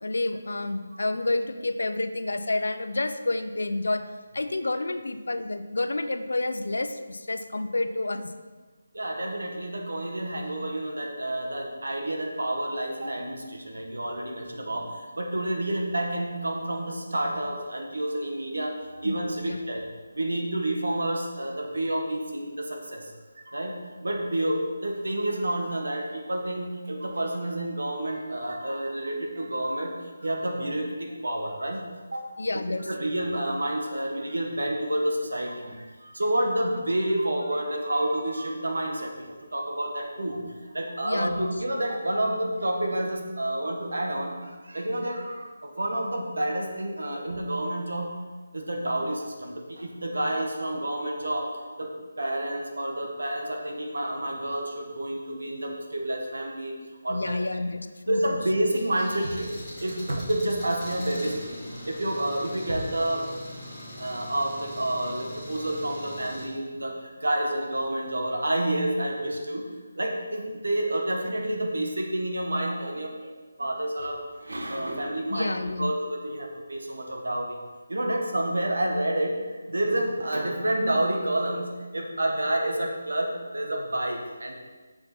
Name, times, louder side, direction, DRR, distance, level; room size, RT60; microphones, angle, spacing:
voice 1, 0.0-4.0 4.3-8.3 19.0-19.6 32.4-33.2 41.0-41.5 57.1-58.4 75.3-75.9, left 2 dB, 85° left, 10 dB, 0.7 m, -29 dB
voice 2, 8.9-19.9 20.1-23.1 23.3-31.8 32.1-32.3 32.5-48.2 48.5-51.5 51.8-51.9 52.2-56.7 57.0-57.6 58.1-59.5 59.8-63.3 64.0-69.7 70.0-73.3 73.6-77.6 77.9-84.5, right 1 dB, 90° right, 1 dB, 1.7 m, -29 dB
Engine, 58.7-66.4, equal, ahead, 2.5 m, -41 dB
6.9 x 6.8 x 4.5 m, 1.3 s
figure-of-eight pair, 175°, 0 cm